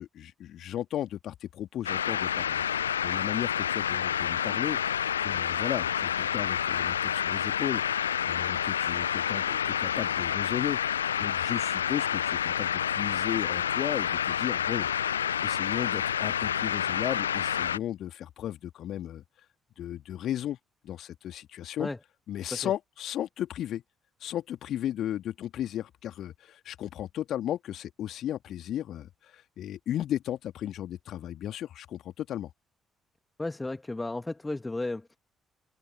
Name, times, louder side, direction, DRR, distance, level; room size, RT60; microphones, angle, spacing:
voice 1, 0.0-2.6 3.0-4.8 5.2-8.0 8.2-10.8 11.2-15.1 15.4-19.2 19.8-20.6 20.8-21.9 22.3-23.8 24.2-32.5, left 11 dB, 55° left, 2.1 m, -35 dB
sound 1, 1.9-17.8, left 9 dB, 80° left, 0.5 m, -29 dB
voice 2, 33.4-35.2, left 2 dB, 15° left, 1.8 m, -34 dB
figure-of-eight pair, 40°, 0 cm